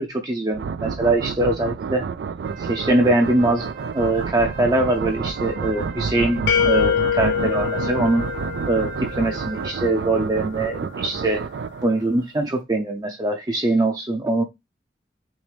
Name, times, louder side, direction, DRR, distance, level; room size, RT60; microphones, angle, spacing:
voice 1, 0.0-2.0 2.6-8.3 8.7-11.5 11.8-14.4, right 2 dB, 20° right, 0.6 m, -22 dB
sound 1, 0.5-12.2, right 5 dB, 75° right, 0.3 m, -30 dB
Wind instrument woodwind instrument, 2.4-10.0, right 5 dB, 55° right, 1.2 m, -39 dB
sound 2, 6.5-9.3, left 9 dB, 90° left, 0.5 m, -24 dB
6.1 x 2.6 x 3.3 m
head